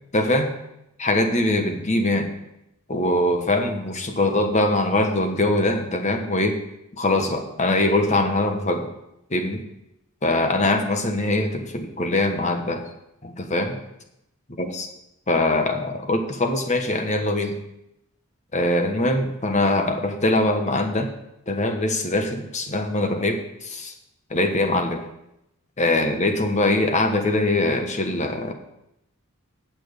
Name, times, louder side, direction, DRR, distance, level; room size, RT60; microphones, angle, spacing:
voice 1, 0.1-0.5 1.0-2.3 2.9-6.6 7.0-8.9 9.3-9.6 10.2-12.8 13.2-13.8 14.6-14.9 15.3-17.5 18.5-21.1 21.5-23.9 24.3-25.1 25.8-28.5, left 2 dB, 30° left, 5 dB, 1.2 m, -22 dB
8.8 x 6.0 x 8.1 m, 0.83 s
head